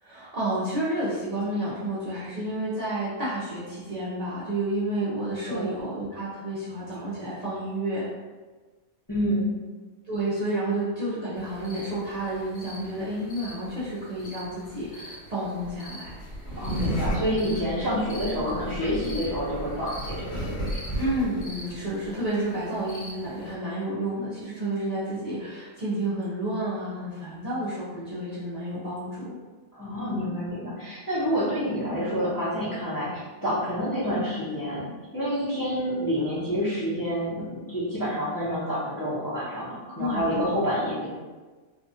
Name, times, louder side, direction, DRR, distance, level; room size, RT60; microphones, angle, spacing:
voice 1, 0.0-8.0 10.1-16.1 21.0-29.4 40.0-40.5, right 1 dB, 45° right, -10 dB, 0.5 m, -30 dB
voice 2, 9.1-9.5 16.5-20.8 29.7-34.8 35.1-41.1, equal, 20° left, -11 dB, 0.6 m, -28 dB
sound 1, 11.4-23.5, equal, 65° left, 1.1 m, -36 dB
2.7 x 2.3 x 2.7 m, 1.3 s
omnidirectional pair, 1.2 m